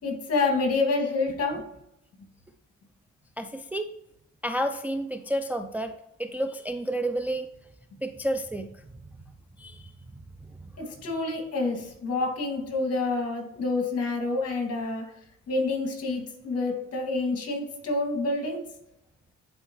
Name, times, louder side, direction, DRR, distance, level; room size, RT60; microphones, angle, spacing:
voice 1, 0.0-1.6 10.8-15.0 15.5-18.6, left 3 dB, 55° left, 2 dB, 2.3 m, -28 dB
voice 2, 3.4-3.9 4.4-5.9 6.2-7.5 8.0-8.9 9.6-9.9, right 1 dB, 5° right, 7 dB, 0.4 m, -30 dB
10.5 x 4.4 x 3.1 m, 0.83 s
cardioid pair, 90°, 30 cm